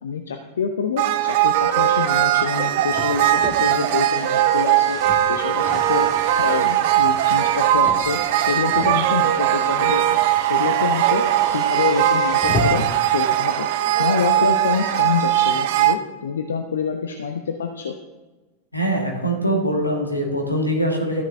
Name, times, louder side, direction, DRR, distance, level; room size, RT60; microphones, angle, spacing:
voice 1, 0.0-5.0 5.3-6.1 6.4-10.0 10.4-11.2 11.5-13.7 14.0-18.0, left 6 dB, 65° left, 6 dB, 0.6 m, -26 dB
sound 1, 1.0-15.9, right 12 dB, 50° right, 0.5 m, -19 dB
Car, 2.5-13.1, left 2 dB, 30° left, 1.6 m, -35 dB
voice 2, 18.7-21.2, right 1 dB, 85° left, 0 dB, 1.8 m, -22 dB
13.5 x 10.0 x 2.7 m, 1.2 s
figure-of-eight pair, 90°, 0 cm